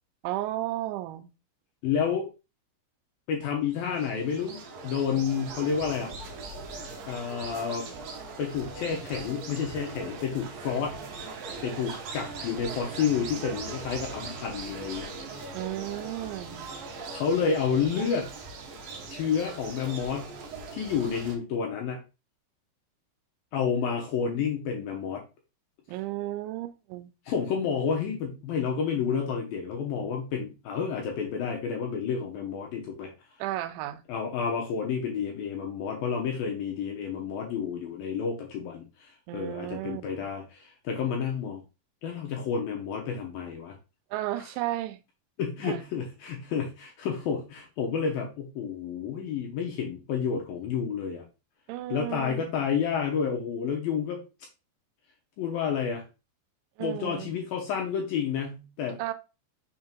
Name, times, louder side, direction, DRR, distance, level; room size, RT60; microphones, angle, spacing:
voice 1, 0.2-1.3 15.5-16.7 25.9-27.1 33.4-34.0 39.3-40.0 44.1-45.0 45.6-45.8 51.7-52.4 56.8-57.3 59.0-59.1, right 15 dB, 85° right, 3.0 m, -33 dB
voice 2, 1.8-2.3 3.3-6.1 7.1-7.9 8.4-11.0 11.6-15.1 17.1-18.3 19.1-20.4 20.7-22.0 23.5-25.2 27.3-33.1 34.1-41.6 42.0-43.7 45.4-51.2 51.9-54.2 55.4-56.0 56.8-59.0, left 6 dB, 70° left, 2.3 m, -30 dB
sound 1, 3.7-21.4, right 3 dB, 65° right, 2.4 m, -40 dB
6.7 x 3.7 x 4.4 m
omnidirectional pair, 5.3 m